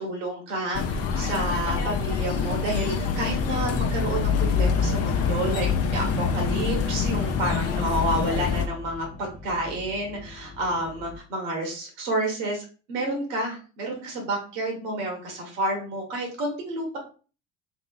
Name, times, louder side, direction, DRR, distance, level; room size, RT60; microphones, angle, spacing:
voice 1, 0.0-17.0, right 1 dB, 65° right, 0 dB, 1.1 m, -30 dB
sound 1, 0.7-8.7, left 6 dB, 40° left, 0.6 m, -25 dB
sound 2, 4.1-11.2, left 5 dB, 20° left, 0.9 m, -41 dB
2.8 x 2.7 x 2.2 m, 0.36 s
hypercardioid pair, 65°, 37 cm